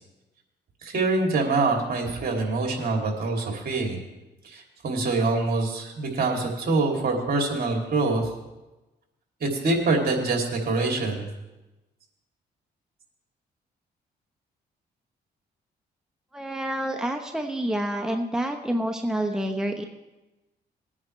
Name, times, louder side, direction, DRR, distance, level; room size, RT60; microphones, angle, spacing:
voice 1, 0.8-4.0 4.4-8.3 9.4-11.3, right 3 dB, 55° right, 0 dB, 3.1 m, -25 dB
voice 2, 16.3-19.8, right 1 dB, 5° right, 3 dB, 1.1 m, -28 dB
20.5 x 9.6 x 3.3 m, 1.1 s
cardioid pair, 80°, 18 cm